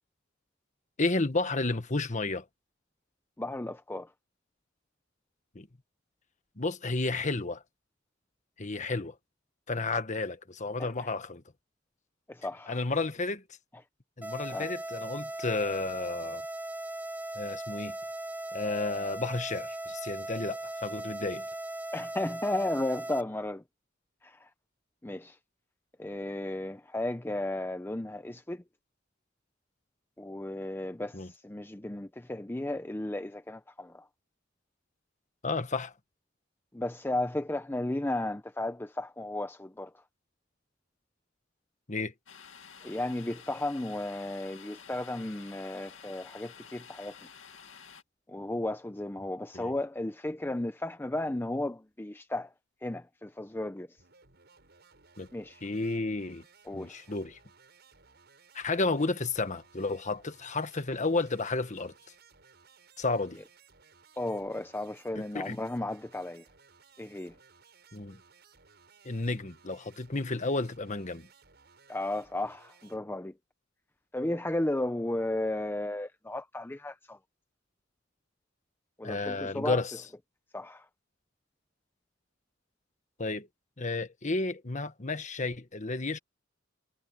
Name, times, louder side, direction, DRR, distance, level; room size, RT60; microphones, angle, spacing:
voice 1, 1.0-2.4 5.5-5.7 6.6-7.6 8.6-9.2 9.7-11.4 12.7-13.4 14.2-16.4 17.3-18.0 18.5-21.4 31.1-31.3 35.4-35.9 41.9-42.1 49.5-49.7 55.2-55.3 55.6-56.4 56.7-57.4 58.5-61.9 63.0-63.4 65.3-65.6 67.9-68.2 69.0-71.3 79.0-79.9 83.2-83.5 83.8-86.2, left 3 dB, 40° left, 1.4 m, -32 dB
voice 2, 3.4-4.1 10.8-11.1 12.3-12.8 14.5-14.7 21.9-23.6 24.2-24.5 25.0-25.4 26.0-28.6 30.2-34.1 36.7-39.9 42.8-47.1 48.3-52.5 52.8-53.9 55.3-55.6 56.7-57.0 64.2-66.4 67.0-67.3 71.9-73.3 74.1-77.2 79.0-79.8 80.5-80.9, left 1 dB, 10° left, 0.6 m, -34 dB
sound 1, 14.2-23.2, right 1 dB, 10° right, 2.5 m, -38 dB
Domestic sounds home sounds, 42.3-48.0, left 7 dB, 80° left, 2.3 m, -51 dB
sound 2, 54.0-73.0, right 5 dB, 55° right, 7.5 m, -60 dB
head